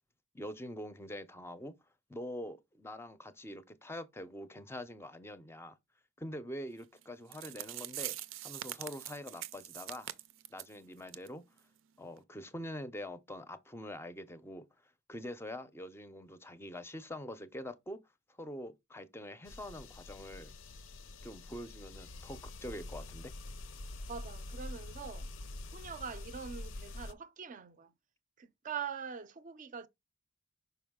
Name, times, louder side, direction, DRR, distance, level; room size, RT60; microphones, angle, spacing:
voice 1, 0.3-1.7 2.1-5.8 6.2-8.2 8.4-10.1 10.5-11.4 12.0-14.6 15.1-18.0 18.4-20.5 21.2-23.3, left 1 dB, 15° left, 0.5 m, -44 dB
sound 1, 7.0-7.1 7.3-10.7 11.1-11.3 11.6-11.7 12.2-12.3, right 13 dB, 90° right, 0.5 m, -43 dB
sound 2, 19.4-27.1, left 2 dB, 75° left, 0.6 m, -46 dB
voice 2, 24.1-25.3 25.7-27.9 28.4-29.9, right 6 dB, 40° right, 0.5 m, -43 dB
5.6 x 4.7 x 3.6 m
head